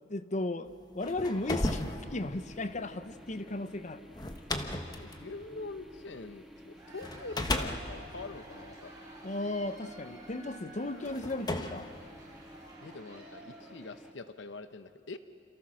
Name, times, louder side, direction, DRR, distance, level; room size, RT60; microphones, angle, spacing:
voice 1, 0.1-4.1 9.2-11.9, left 2 dB, 40° left, 11 dB, 1.0 m, -35 dB
sound 1, 0.8-6.4 7.0-9.5 10.3-10.4 11.0-12.7, left 1 dB, 20° left, 1.3 m, -36 dB
sound 2, 1.2-14.1, equal, ahead, 1.5 m, -53 dB
voice 2, 5.0-8.9 12.8-15.2, left 3 dB, 70° left, 10 dB, 1.0 m, -44 dB
Cheering / Applause / Crowd, 6.6-14.2, right 1 dB, 20° right, 6.1 m, -53 dB
28.5 x 27.5 x 6.4 m, 2.6 s
head